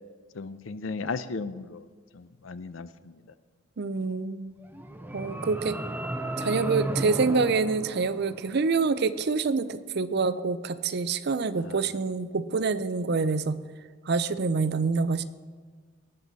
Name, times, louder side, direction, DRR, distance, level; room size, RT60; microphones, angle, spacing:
voice 1, 0.3-1.9 2.1-3.2 11.6-11.8, left 4 dB, 75° left, 14 dB, 0.6 m, -36 dB
voice 2, 3.8-4.5 5.1-5.8 6.4-13.6 14.1-15.2, right 4 dB, 55° right, 14 dB, 0.5 m, -26 dB
sound 1, 4.6-8.8, right 1 dB, 10° right, 0.6 m, -34 dB
18.5 x 7.8 x 4.1 m, 1.5 s
head